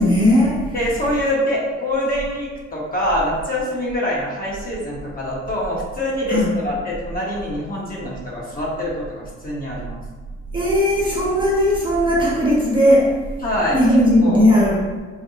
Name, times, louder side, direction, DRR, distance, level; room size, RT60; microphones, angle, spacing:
voice 1, 0.0-0.7 6.3-6.5 10.5-13.2 13.7-14.8, left 1 dB, 15° right, -6 dB, 0.8 m, -17 dB
voice 2, 0.7-10.0 13.4-13.8 14.2-14.5, left 1 dB, 30° left, -5 dB, 1.1 m, -24 dB
4.1 x 2.2 x 2.8 m, 1.4 s
cardioid pair, 90°, 30 cm